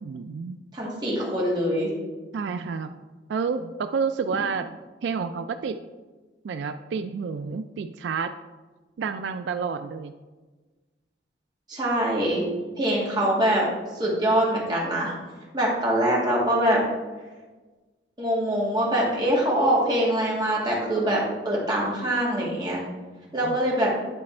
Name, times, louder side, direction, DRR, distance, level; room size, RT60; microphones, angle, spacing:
voice 1, 0.0-0.6 2.3-3.0 3.3-5.8 6.4-8.3 9.0-10.1 23.4-23.6, right 5 dB, 80° right, 10 dB, 0.3 m, -30 dB
voice 2, 0.7-1.9 11.7-12.4 12.8-13.6 13.9-15.1 15.5-16.8 18.2-22.8 23.3-24.0, right 1 dB, 25° right, -4 dB, 1.9 m, -24 dB
9.8 x 4.2 x 4.3 m, 1.3 s
head